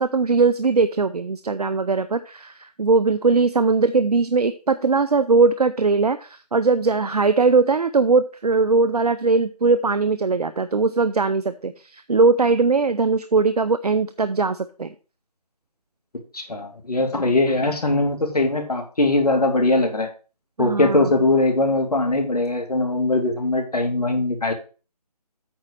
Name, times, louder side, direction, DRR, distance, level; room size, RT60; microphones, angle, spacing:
voice 1, 0.0-14.9 20.6-21.1, right 4 dB, 70° right, 12 dB, 0.7 m, -20 dB
voice 2, 16.3-20.1 20.6-24.5, left 2 dB, 70° left, 3 dB, 2.6 m, -21 dB
8.8 x 4.3 x 6.4 m, 0.35 s
figure-of-eight pair, 160°, 20 cm